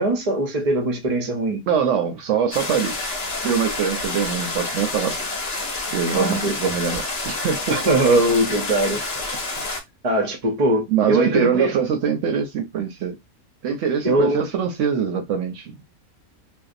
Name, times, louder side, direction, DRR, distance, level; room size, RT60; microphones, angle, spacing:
voice 1, 0.0-1.6 6.1-6.6 7.7-9.0 10.0-11.8 14.0-14.5, right 1 dB, 45° right, 0.5 m, -21 dB
voice 2, 1.7-3.0 3.4-5.2 5.9-7.8 10.9-13.2 13.6-15.8, right 7 dB, 65° right, 0.8 m, -23 dB
sound 1, 2.5-9.8, left 2 dB, 50° left, 0.9 m, -28 dB
2.6 x 2.0 x 2.5 m
omnidirectional pair, 1.5 m